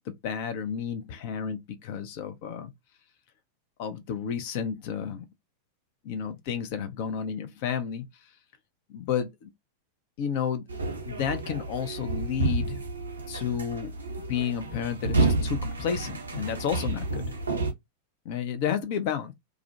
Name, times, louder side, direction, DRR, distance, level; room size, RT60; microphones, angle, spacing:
voice 1, 0.1-2.7 3.8-5.3 6.0-8.1 8.9-9.5 10.2-10.6 11.1-12.8 13.3-13.9 14.3-17.2 18.2-19.3, left 8 dB, 45° left, 0.5 m, -31 dB
sound 1, 10.7-17.7, right 2 dB, 75° right, 0.6 m, -30 dB
2.4 x 2.1 x 2.5 m
figure-of-eight pair, 90°, 0 cm